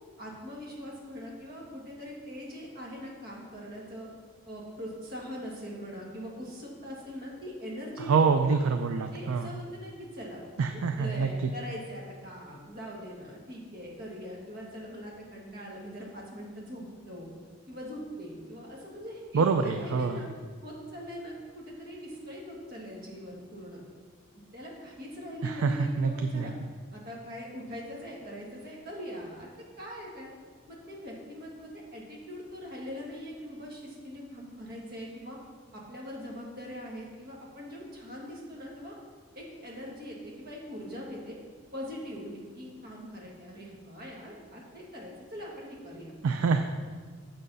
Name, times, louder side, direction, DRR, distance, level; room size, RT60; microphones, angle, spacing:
voice 1, 0.2-4.1 4.4-8.6 9.1-17.3 17.7-20.3 20.6-23.8 24.3-26.5 26.9-29.5 29.8-30.3 30.7-35.4 35.7-39.0 39.4-41.4 41.7-46.1, equal, 45° right, -3 dB, 1.8 m, -42 dB
voice 2, 8.1-9.5 10.6-11.3 19.3-20.2 25.4-26.5 46.2-46.6, right 5 dB, 80° right, 6 dB, 0.4 m, -26 dB
6.6 x 6.2 x 5.4 m, 1.5 s
head